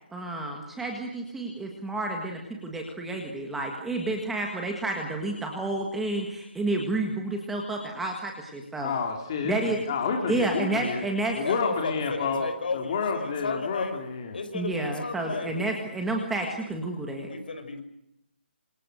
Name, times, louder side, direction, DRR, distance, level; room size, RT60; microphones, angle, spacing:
voice 1, 0.1-8.9 9.4-9.8 10.3-11.4 14.5-17.3, right 2 dB, 5° right, 1 dB, 1.7 m, -30 dB
voice 2, 8.8-11.0 11.4-12.5 12.7-14.4, left 5 dB, 25° left, 2 dB, 3.1 m, -29 dB
voice 3, 11.4-14.0 14.3-15.6 17.3-17.8, left 4 dB, 50° left, 7 dB, 5.9 m, -34 dB
28.0 x 27.0 x 6.4 m, 0.81 s
hypercardioid pair, 175°, 6 cm